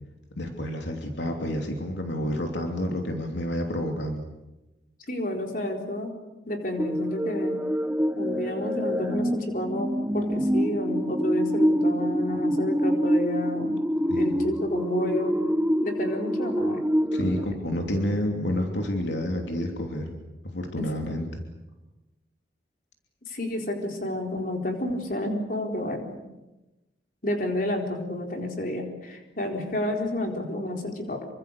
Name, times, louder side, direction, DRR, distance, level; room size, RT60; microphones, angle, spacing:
voice 1, 0.3-4.2 14.1-14.3 17.1-20.1 20.4-21.4, left 1 dB, 75° left, 2 dB, 3.0 m, -29 dB
voice 2, 5.1-6.1 6.4-7.6 8.1-13.8 14.1-15.4 15.8-16.8 17.2-17.4 23.3-26.2 27.2-31.3, left 1 dB, 45° left, 2 dB, 4.2 m, -30 dB
sound 1, 6.8-17.5, equal, 10° right, 0.8 m, -26 dB
27.0 x 24.5 x 6.8 m, 1.0 s
head